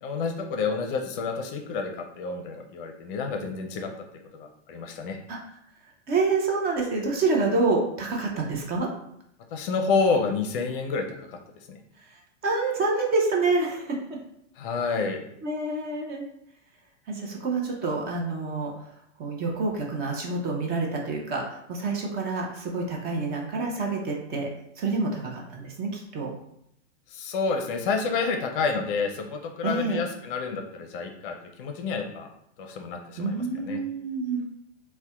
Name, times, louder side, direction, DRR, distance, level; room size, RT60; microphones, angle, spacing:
voice 1, 0.0-3.9 4.3-5.2 9.5-11.4 11.7-11.8 14.6-15.2 27.1-32.3 32.6-33.8, left 4 dB, 50° left, 4 dB, 0.5 m, -29 dB
voice 2, 6.1-8.9 12.1-14.2 15.4-16.3 17.1-18.7 19.2-24.5 24.8-26.3 29.6-30.0 33.2-34.5, right 3 dB, 25° right, 0 dB, 0.5 m, -27 dB
4.0 x 2.1 x 2.3 m, 0.74 s
hypercardioid pair, 120°, 35 cm